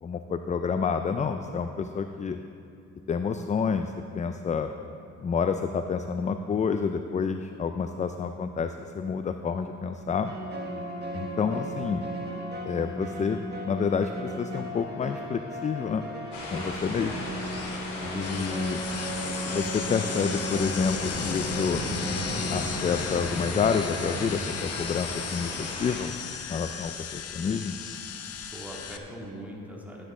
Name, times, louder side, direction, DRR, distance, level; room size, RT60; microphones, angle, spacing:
voice 1, 0.0-2.4 3.1-4.7 5.2-10.3 11.1-12.0 12.7-16.1 16.5-17.2 18.0-18.8 19.5-21.8 22.5-26.1 26.5-27.8, left 6 dB, 25° left, 8 dB, 0.4 m, -29 dB
sound 1, 10.2-24.3, right 1 dB, 35° right, 1.4 m, -36 dB
sound 2, 16.3-26.0, left 2 dB, 75° left, 2.6 m, -35 dB
sound 3, 17.4-29.0, left 8 dB, 55° left, 0.8 m, -37 dB
voice 2, 18.1-18.6 28.5-30.0, equal, 5° right, -3 dB, 2.2 m, -41 dB
12.0 x 9.6 x 3.7 m, 2.6 s
cardioid pair, 90°, 30 cm